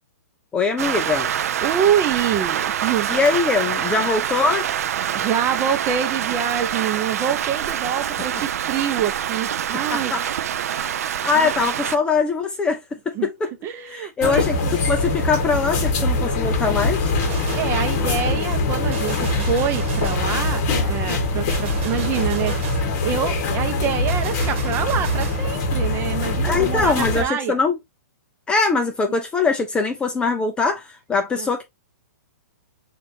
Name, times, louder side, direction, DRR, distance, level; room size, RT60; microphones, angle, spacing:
voice 1, 0.5-1.3 3.1-4.6 9.9-10.3 10.7-10.9 11.2-13.5 13.9-14.6 14.9-17.1 26.4-27.8 28.5-31.6, left 4 dB, 10° left, 0.4 m, -22 dB
Rain, 0.8-12.0, right 10 dB, 65° right, 0.4 m, -25 dB
voice 2, 1.6-3.1 5.1-10.1 11.3-11.5 13.1-13.3 13.6-14.8 17.5-22.6 23.0-27.6 31.4-31.5, right 8 dB, 25° right, 0.7 m, -26 dB
sound 1, 14.2-27.2, left 2 dB, 40° left, 1.4 m, -23 dB
Gunshot gunfire, 17.2-17.8 18.9-20.4 21.5-22.9 24.1-25.5, right 5 dB, 50° right, 1.2 m, -34 dB
6.2 x 2.5 x 2.7 m
hypercardioid pair, 140°, 9 cm